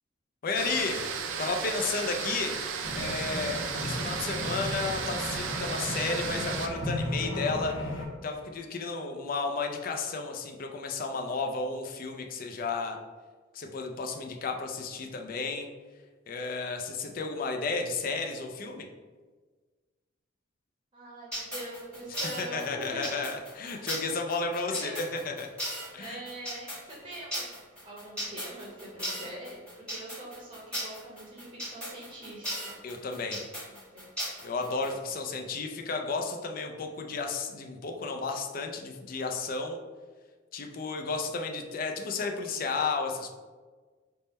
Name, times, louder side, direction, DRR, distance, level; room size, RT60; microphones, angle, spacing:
voice 1, 0.4-1.1 1.4-2.6 3.0-7.7 8.2-13.0 13.5-15.7 16.3-18.9 22.4-25.5 25.9-26.2 32.8-33.4 34.4-39.8 40.5-43.3, left 4 dB, 45° left, 3 dB, 0.4 m, -33 dB
sound 1, 0.5-6.7, right 6 dB, 75° right, 0.4 m, -34 dB
sound 2, 2.8-8.0, left 1 dB, 75° left, 0.8 m, -35 dB
voice 2, 20.9-23.2 23.6-23.8 24.8-25.0 25.9-32.8 33.7-34.1 35.3-35.4, right 1 dB, 25° right, -4 dB, 0.7 m, -43 dB
sound 3, 21.3-34.9, equal, 5° left, 1.2 m, -36 dB
3.5 x 2.1 x 4.1 m, 1.4 s
head